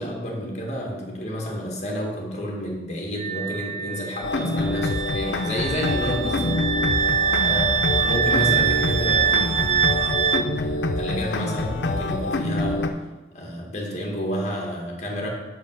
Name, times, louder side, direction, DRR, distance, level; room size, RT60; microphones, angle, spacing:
voice 1, 0.0-6.6 6.9-12.9 13.3-15.3, equal, 40° left, -1 dB, 1.6 m, -30 dB
Wind instrument woodwind instrument, 3.2-10.4, right 7 dB, 40° right, 0.4 m, -24 dB
sound 1, 4.2-12.9, left 2 dB, 75° left, 0.5 m, -26 dB
sound 2, 6.0-10.1, left 2 dB, 75° right, 2.1 m, -34 dB
5.3 x 5.0 x 6.5 m, 1.1 s
head